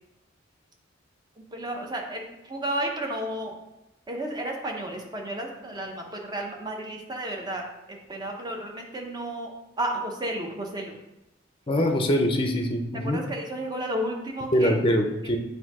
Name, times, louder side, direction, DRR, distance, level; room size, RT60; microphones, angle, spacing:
voice 1, 1.4-3.6 4.1-10.9 11.8-11.9 13.0-14.8 15.2-15.3, right 1 dB, 20° right, 1 dB, 0.8 m, -32 dB
voice 2, 11.7-13.2 14.5-15.4, equal, 25° left, 3 dB, 0.6 m, -23 dB
7.7 x 2.7 x 4.7 m, 0.92 s
head